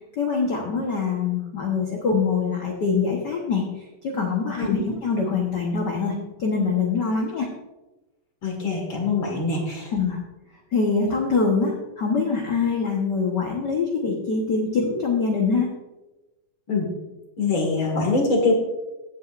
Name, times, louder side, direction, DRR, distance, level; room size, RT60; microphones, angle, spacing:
voice 1, 0.2-3.6 4.0-6.1 6.4-7.5 9.9-10.2 10.7-15.7, left 4 dB, 65° left, 0 dB, 1.0 m, -24 dB
voice 2, 8.4-9.9 16.7-16.9 17.4-18.5, left 3 dB, 45° left, 0 dB, 2.1 m, -23 dB
16.0 x 8.3 x 2.5 m, 1.1 s
omnidirectional pair, 3.7 m